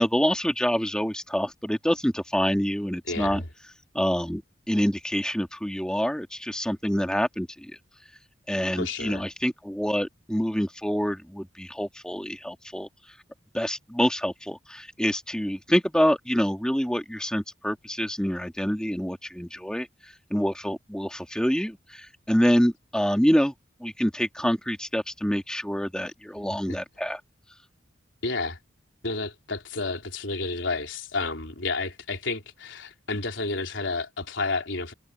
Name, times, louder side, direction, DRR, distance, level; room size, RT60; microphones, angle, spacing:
voice 1, 0.0-3.4 3.9-4.4 4.7-7.7 8.5-12.9 13.5-19.9 20.3-23.5 23.8-27.2, equal, 5° left, 2.1 m, -26 dB
voice 2, 3.1-3.5 8.8-9.2 26.7-26.8 28.2-28.6 29.0-34.9, left 3 dB, 70° left, 4.1 m, -31 dB
head